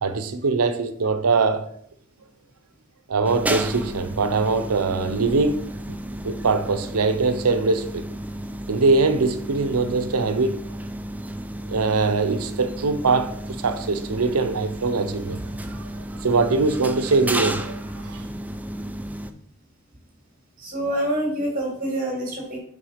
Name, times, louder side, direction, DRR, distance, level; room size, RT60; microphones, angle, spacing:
voice 1, 0.0-1.6 3.1-5.6 6.2-8.0 8.7-10.6 11.7-15.4 15.7-18.2, right 3 dB, 90° right, 0.7 m, -22 dB
sound 1, 3.2-19.3, right 1 dB, 5° right, 0.4 m, -33 dB
voice 2, 18.5-19.0 20.6-22.6, right 1 dB, 40° right, 3.0 m, -27 dB
6.1 x 3.9 x 5.7 m
head